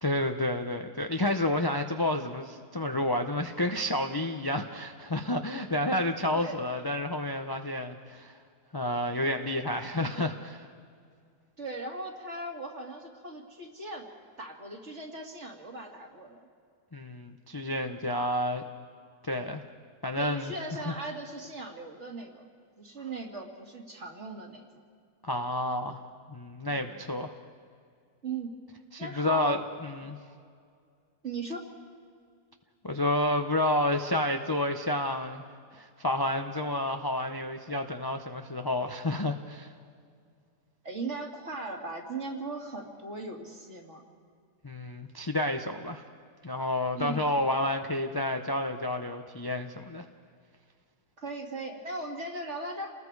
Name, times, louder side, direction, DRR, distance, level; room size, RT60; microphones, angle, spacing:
voice 1, 0.0-8.3 8.7-10.6 16.9-18.6 19.2-19.6 20.0-20.5 20.9-21.0 25.2-26.0 26.3-27.3 28.9-30.2 32.8-35.5 35.7-39.7 44.6-46.0 46.4-50.0, left 1 dB, 25° left, 5 dB, 0.5 m, -30 dB
voice 2, 11.6-14.1 14.4-16.5 20.2-22.5 22.8-24.8 26.6-26.9 28.2-28.5 29.0-29.6 31.2-31.6 40.8-44.0 47.0-47.2 51.2-52.9, right 3 dB, 45° right, 1 dB, 2.6 m, -38 dB
30.0 x 20.0 x 4.8 m, 2.2 s
omnidirectional pair, 1.7 m